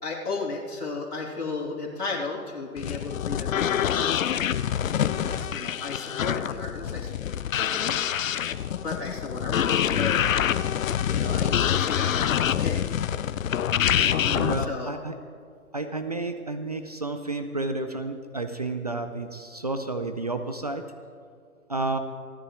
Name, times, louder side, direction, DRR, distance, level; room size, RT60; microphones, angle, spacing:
voice 1, 0.0-4.5 5.0-7.9 8.7-10.2 11.1-12.8 13.6-13.7 14.6-14.9, left 4 dB, 85° left, -2 dB, 3.1 m, -34 dB
sound 1, 2.8-14.7, left 9 dB, 60° left, 0.6 m, -26 dB
voice 2, 14.3-15.2 15.7-20.9 21.7-22.0, right 2 dB, 30° right, 8 dB, 0.4 m, -31 dB
28.5 x 10.0 x 3.1 m, 2.2 s
figure-of-eight pair, 140°, 45 cm